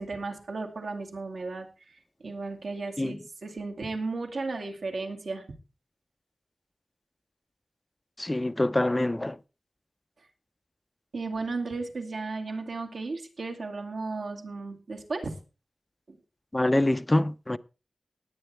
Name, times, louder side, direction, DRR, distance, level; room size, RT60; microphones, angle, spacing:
voice 1, 0.0-5.5 11.1-15.4 16.1-16.2, right 3 dB, 75° right, 2.2 m, -35 dB
voice 2, 8.2-9.4 16.5-17.6, left 1 dB, 20° left, 0.5 m, -25 dB
19.0 x 8.9 x 3.3 m
wide cardioid pair, 105°, 0 cm